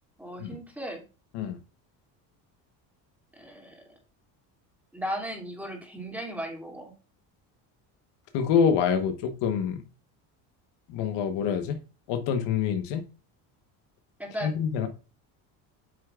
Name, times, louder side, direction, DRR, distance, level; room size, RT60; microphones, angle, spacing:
voice 1, 0.2-1.0 3.3-4.0 4.9-6.9 14.2-14.5, equal, 5° right, 2.6 m, -36 dB
voice 2, 8.3-9.8 10.9-11.8 12.1-13.1 14.4-14.9, left 7 dB, 70° left, 1.2 m, -26 dB
8.7 x 6.5 x 2.4 m
cardioid pair, 115°, 43 cm